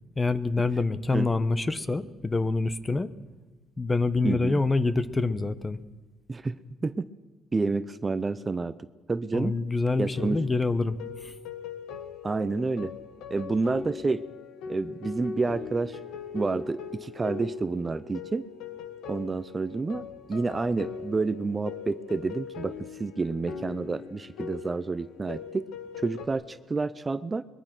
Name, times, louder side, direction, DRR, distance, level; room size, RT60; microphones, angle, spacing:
voice 1, 0.2-3.1 3.8-5.8 9.3-11.4, left 3 dB, 20° left, 15 dB, 0.9 m, -26 dB
voice 2, 4.2-4.6 6.3-7.1 7.5-8.8 9.1-9.5 10.0-10.4 12.2-12.9 13.3-14.2 14.7-16.0 16.3-18.4 19.1-25.7 26.0-27.4, right 3 dB, 20° right, 14 dB, 0.6 m, -29 dB
sound 1, 10.2-26.3, left 6 dB, 85° left, 1.8 m, -40 dB
22.5 x 21.0 x 6.1 m, 1.2 s
cardioid pair, 115°, 0 cm